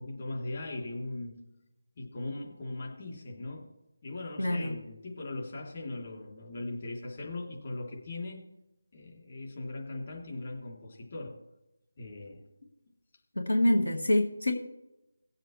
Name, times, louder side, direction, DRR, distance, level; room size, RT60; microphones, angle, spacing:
voice 1, 0.0-1.4 2.0-3.7 4.0-8.4 8.9-11.4 12.0-12.5, left 2 dB, 40° left, -1 dB, 3.3 m, -39 dB
voice 2, 4.4-4.7 13.4-14.5, left 1 dB, 90° left, 2 dB, 1.9 m, -26 dB
20.0 x 7.7 x 3.3 m, 0.93 s
figure-of-eight pair, 165°, 0 cm